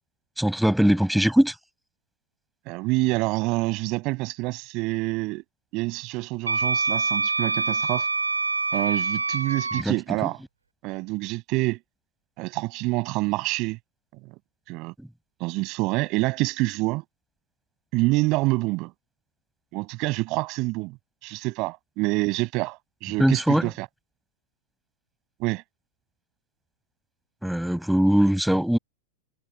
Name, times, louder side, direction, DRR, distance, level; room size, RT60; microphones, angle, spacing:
voice 1, 0.4-1.5 9.8-9.9 23.2-23.7 27.4-28.8, equal, ahead, 6.5 m, -21 dB
voice 2, 2.7-5.4 5.7-8.1 8.7-10.4 10.8-11.8 12.4-13.8 14.3-14.4 14.7-14.9 15.4-17.0 17.9-18.9 19.7-21.0 21.2-23.9 25.4-25.6, right 23 dB, 40° right, 7.5 m, -27 dB
Wind instrument woodwind instrument, 6.5-9.8, right 4 dB, 80° right, 3.1 m, -25 dB
figure-of-eight pair, 90°, 0 cm